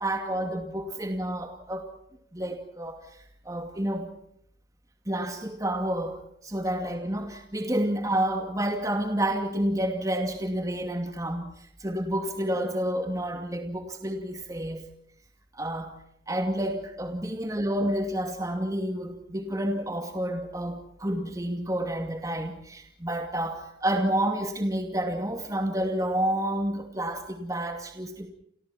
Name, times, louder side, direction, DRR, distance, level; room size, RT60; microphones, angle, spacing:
voice 1, 0.0-1.9 2.3-3.0 3.4-4.1 5.1-11.5 11.8-14.9 15.5-15.9 16.3-28.3, right 1 dB, 20° right, 4 dB, 2.5 m, -29 dB
29.5 x 29.0 x 4.4 m, 0.69 s
head